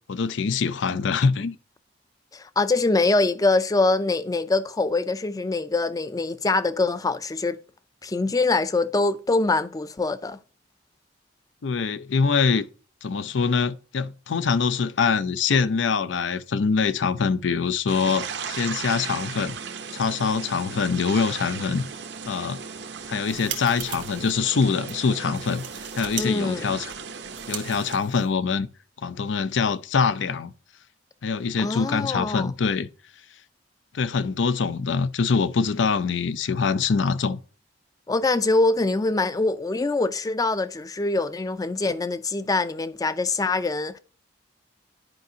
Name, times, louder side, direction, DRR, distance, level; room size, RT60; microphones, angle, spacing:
voice 1, 0.1-1.6 11.6-12.7 13.0-19.6 19.9-21.8 22.3-22.6 23.1-25.7 25.9-26.9 27.5-28.7 29.0-30.5 31.2-32.9 33.9-37.4, left 5 dB, 85° left, 0.5 m, -24 dB
voice 2, 2.3-7.6 8.0-10.4 26.2-26.8 31.6-32.5 38.1-44.0, left 3 dB, 20° left, 0.4 m, -24 dB
sound 1, 17.9-28.0, right 6 dB, 65° right, 0.7 m, -36 dB
sound 2, 23.0-24.3 24.8-24.9 25.3-26.3 26.5-28.5, right 9 dB, 85° right, 1.3 m, -38 dB
10.5 x 5.1 x 2.7 m
head